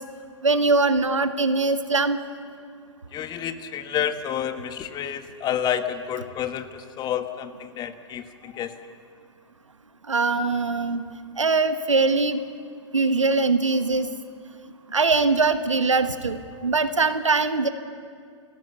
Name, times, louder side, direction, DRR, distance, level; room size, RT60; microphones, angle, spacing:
voice 1, 0.4-2.2 10.1-11.1 11.4-12.4 12.9-14.1 14.9-17.7, right 3 dB, 90° right, 10 dB, 1.2 m, -22 dB
voice 2, 3.1-8.7 10.4-10.5, left 9 dB, 25° left, 10 dB, 1.2 m, -29 dB
29.0 x 12.5 x 8.0 m, 2.2 s
figure-of-eight pair, 110°, 16 cm